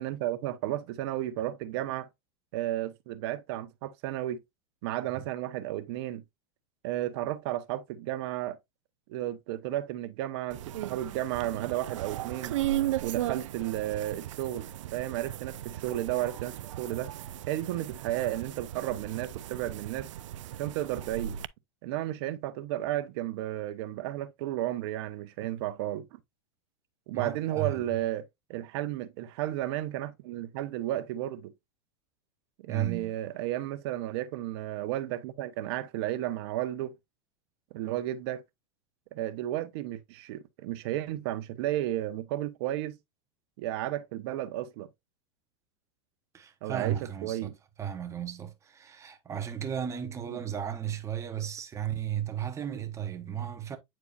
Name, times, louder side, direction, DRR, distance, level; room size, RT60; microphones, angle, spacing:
voice 1, 0.0-2.1 2.5-4.4 4.8-6.2 6.8-8.6 9.1-12.6 13.0-17.1 17.5-20.1 20.6-21.4 21.8-26.1 27.1-28.2 28.5-31.5 32.6-36.9 37.7-38.4 39.1-43.0 43.6-44.9 46.6-47.5 50.3-50.4, right 13 dB, 55° right, 0.8 m, -33 dB
sound 1, 10.5-21.5, right 13 dB, 90° right, 0.4 m, -36 dB
voice 2, 27.1-27.8 32.7-33.1 46.3-47.4 47.8-53.8, right 9 dB, 20° right, 1.0 m, -34 dB
8.4 x 4.6 x 2.5 m
supercardioid pair, 135°, 16 cm